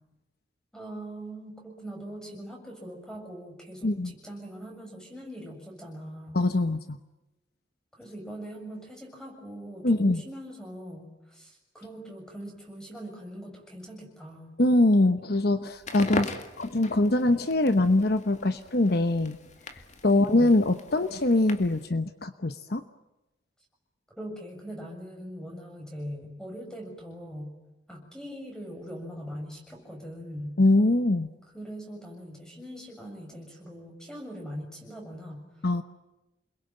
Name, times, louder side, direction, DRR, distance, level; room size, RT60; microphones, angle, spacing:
voice 1, 0.7-6.4 7.9-14.5 20.1-20.5 24.2-27.6 27.9-30.6 31.5-35.5, equal, 5° left, 2 dB, 7.1 m, -41 dB
voice 2, 3.8-4.1 6.3-7.0 9.8-10.2 14.6-16.3 16.6-19.4 20.0-22.8 30.6-31.3 35.6-35.8, left 2 dB, 55° left, 10 dB, 1.0 m, -23 dB
Crackle, 15.7-21.9, left 2 dB, 40° left, 2.2 m, -40 dB
28.5 x 22.0 x 9.1 m, 1.0 s
head